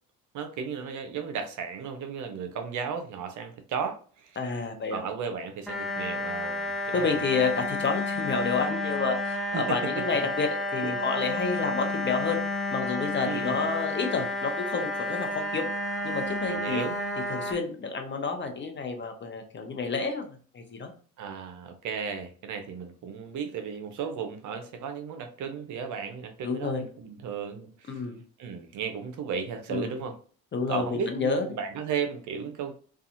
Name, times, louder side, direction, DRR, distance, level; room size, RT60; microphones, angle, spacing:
voice 1, 0.3-4.4 4.9-7.2 9.5-10.0 10.8-10.9 13.2-13.7 16.5-16.9 21.2-28.0 28.4-30.2 30.7-32.7, right 6 dB, 55° right, 7 dB, 0.6 m, -35 dB
voice 2, 4.4-5.0 6.9-12.4 12.7-15.7 16.0-16.8 17.3-20.9 26.4-26.8 27.9-28.2 29.7-30.0 30.5-31.4, left 4 dB, 30° left, 5 dB, 0.7 m, -29 dB
sound 1, 5.7-17.5, left 2 dB, ahead, 0.7 m, -31 dB
2.6 x 2.4 x 2.5 m, 0.42 s
supercardioid pair, 75°, 35 cm